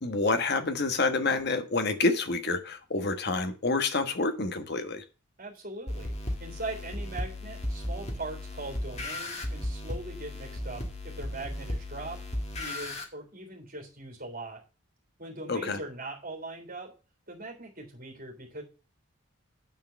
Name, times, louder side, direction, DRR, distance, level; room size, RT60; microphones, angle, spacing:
voice 1, 0.0-5.0 15.5-15.8, left 3 dB, 50° left, 1.2 m, -28 dB
voice 2, 5.4-6.1 6.4-12.2 12.6-14.6 15.2-16.9 17.3-18.6, right 2 dB, 40° right, 3.3 m, -40 dB
sound 1, 5.9-13.0, left 1 dB, 30° left, 1.7 m, -35 dB
9.3 x 4.6 x 7.1 m
head